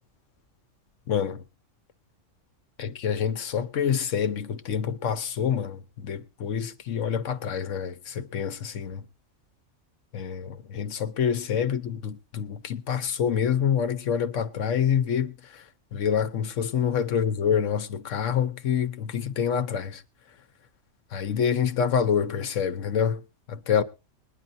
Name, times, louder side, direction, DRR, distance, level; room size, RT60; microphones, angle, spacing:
voice 1, 1.1-1.4 2.8-9.0 10.1-15.6 15.9-20.0 21.1-23.2 23.5-23.8, left 8 dB, 75° left, 1.2 m, -27 dB
21.0 x 10.0 x 2.6 m
omnidirectional pair, 1.3 m